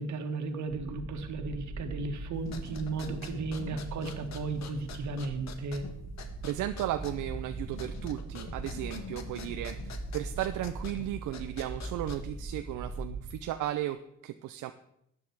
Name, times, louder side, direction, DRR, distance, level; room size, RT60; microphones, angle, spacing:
voice 1, 0.0-5.9, right 3 dB, 70° right, 6 dB, 1.8 m, -35 dB
sound 1, 0.7-13.4, right 2 dB, 20° right, 1.5 m, -41 dB
sound 2, 2.4-12.5, left 6 dB, 65° left, 1.6 m, -46 dB
voice 2, 6.4-14.7, right 13 dB, 90° right, 9 dB, 0.6 m, -35 dB
13.0 x 9.6 x 4.7 m, 0.75 s
cardioid pair, 90°, 30 cm